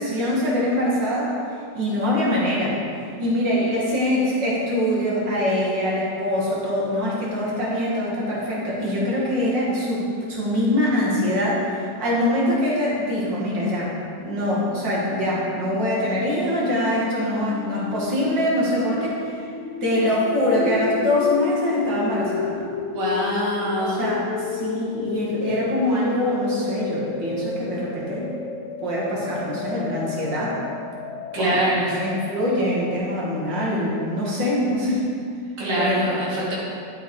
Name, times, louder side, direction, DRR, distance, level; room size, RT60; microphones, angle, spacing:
voice 1, 0.0-1.3 1.7-2.8 3.2-13.9 14.2-19.5 19.8-22.6 23.8-28.3 28.8-30.6 31.4-35.1 35.8-36.2, left 1 dB, 85° right, -5 dB, 2.6 m, -23 dB
sound 1, 14.0-33.0, left 4 dB, 70° left, 0.7 m, -32 dB
voice 2, 22.9-24.0 31.3-32.0 35.6-36.5, right 1 dB, 65° right, -6 dB, 2.2 m, -24 dB
12.0 x 6.6 x 4.7 m, 2.3 s
omnidirectional pair, 1.9 m